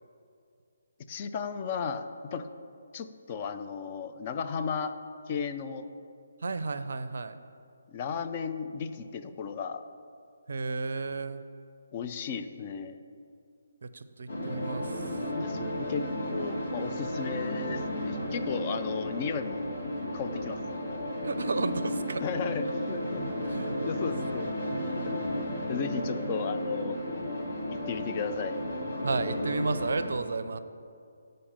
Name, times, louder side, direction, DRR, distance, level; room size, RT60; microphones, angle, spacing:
voice 1, 1.1-2.5 2.9-4.9 5.3-5.9 7.9-9.8 11.9-13.0 15.4-19.7 20.1-20.6 22.2-23.3 23.8-24.5 25.0-25.1 25.7-27.0 27.7-28.6, left 6 dB, 30° left, 8 dB, 0.4 m, -35 dB
voice 2, 6.4-7.3 10.5-11.4 14.2-14.8 21.2-22.2 23.4-24.1 29.0-30.6, right 3 dB, 60° right, 12 dB, 0.4 m, -32 dB
sound 1, 14.3-30.1, left 1 dB, 65° left, 1.9 m, -33 dB
8.4 x 5.2 x 5.5 m, 2.3 s
figure-of-eight pair, 145°, 0 cm